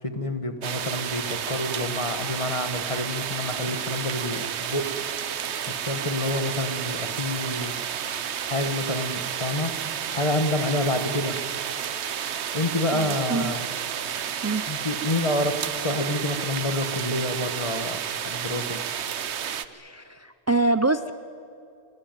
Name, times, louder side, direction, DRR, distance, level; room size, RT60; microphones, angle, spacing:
voice 1, 0.0-4.9 5.7-7.7 8.4-9.7 10.1-11.4 12.5-13.6 14.7-18.8, left 1 dB, 30° left, 8 dB, 1.5 m, -28 dB
sound 1, 0.6-19.7, right 8 dB, 85° right, 1.1 m, -31 dB
voice 2, 12.9-13.5 14.4-14.6 19.7-21.1, right 2 dB, 25° right, 11 dB, 0.4 m, -25 dB
28.0 x 20.5 x 9.2 m, 2.5 s
omnidirectional pair, 1.1 m